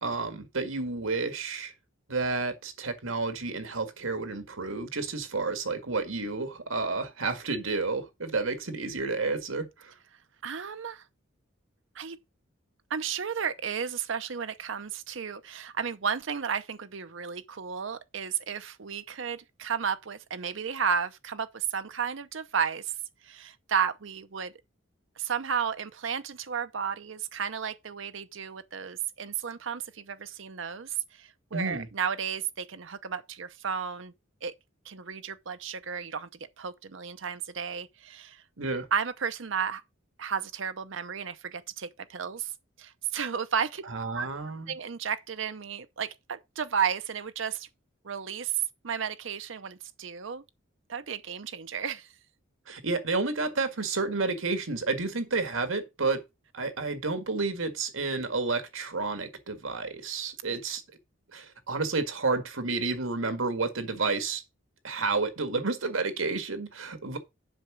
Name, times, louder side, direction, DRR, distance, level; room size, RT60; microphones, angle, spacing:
voice 1, 0.0-1.7 2.1-9.9 31.5-31.9 38.6-38.9 43.9-44.7 52.7-56.2 56.5-60.8 61.3-64.4 64.8-67.2, right 3 dB, 85° right, 1.9 m, -30 dB
voice 2, 10.4-11.0 11.9-12.2 12.9-22.9 23.2-24.5 25.2-34.1 34.4-34.5 34.8-36.3 36.6-38.4 38.9-39.8 40.2-42.5 42.8-43.8 44.1-44.3 44.7-47.7 48.0-50.4 50.9-52.1, right 7 dB, 65° right, 0.7 m, -33 dB
7.7 x 5.9 x 6.0 m
head